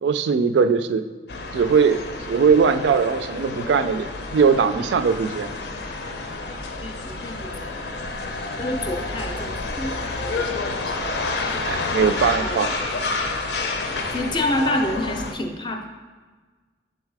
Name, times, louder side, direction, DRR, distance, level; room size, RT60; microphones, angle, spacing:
voice 1, 0.0-1.0 1.5-2.0 2.3-5.5 11.6-12.9, right 5 dB, 75° right, 11 dB, 0.3 m, -20 dB
sound 1, 1.3-15.3, left 3 dB, 70° left, 0.6 m, -29 dB
voice 2, 6.8-7.8 8.6-10.5 10.8-11.2 12.4-12.6 14.1-15.9, left 1 dB, 25° left, 5 dB, 0.5 m, -28 dB
6.5 x 3.9 x 4.7 m, 1.4 s
head